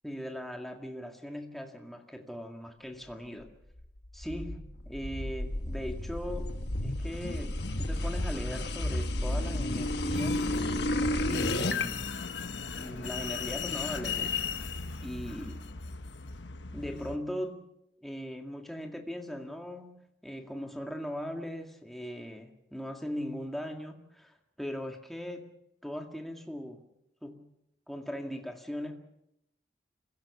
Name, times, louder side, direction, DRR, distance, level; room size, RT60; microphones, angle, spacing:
voice 1, 0.0-3.5 4.1-10.5 11.2-12.1 12.7-14.7 15.0-15.7 16.7-17.7 18.0-25.5 25.8-26.8 27.2-27.5 27.9-29.0, equal, ahead, 3 dB, 2.0 m, -39 dB
sound 1, 3.8-11.8, left 1 dB, 70° left, 1.4 m, -32 dB
sound 2, 10.1-17.2, left 6 dB, 85° left, 1.2 m, -37 dB
25.5 x 16.5 x 7.1 m, 0.82 s
head